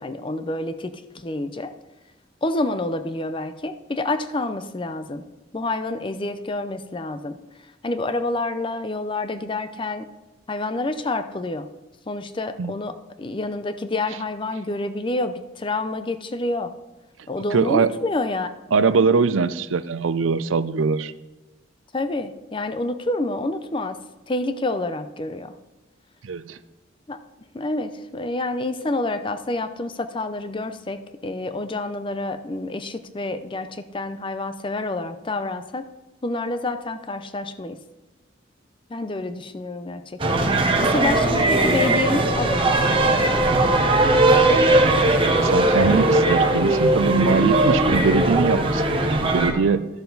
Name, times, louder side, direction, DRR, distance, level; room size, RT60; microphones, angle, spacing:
voice 1, 0.0-1.7 2.4-5.2 5.5-7.4 7.8-10.1 10.5-11.7 12.1-16.7 17.3-18.5 21.9-24.0 24.3-25.5 27.1-27.2 27.5-35.8 36.2-37.8 38.9-40.4 40.8-43.4, left 2 dB, 25° left, 10 dB, 0.5 m, -28 dB
voice 2, 17.5-17.9 18.7-21.1 26.2-26.6 45.4-48.8 49.1-49.9, right 4 dB, 90° right, 14 dB, 0.5 m, -21 dB
sound 1, 40.2-49.5, right 2 dB, 25° right, 1.0 m, -19 dB
13.0 x 6.9 x 3.9 m, 1.1 s
head